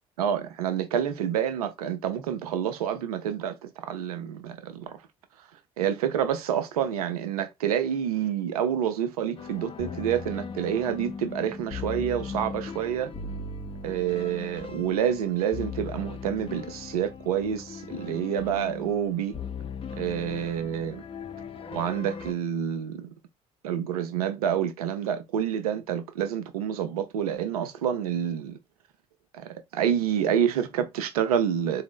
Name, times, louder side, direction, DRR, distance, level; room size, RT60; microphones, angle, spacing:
voice 1, 0.2-5.0 5.8-13.1 13.8-19.3 19.9-21.0 21.7-23.1 23.6-28.6 29.3-31.8, right 9 dB, 80° right, 0.4 m, -28 dB
sound 1, 9.4-22.3, left 5 dB, 30° left, 0.5 m, -38 dB
3.8 x 2.0 x 3.5 m
hypercardioid pair, 50°, 19 cm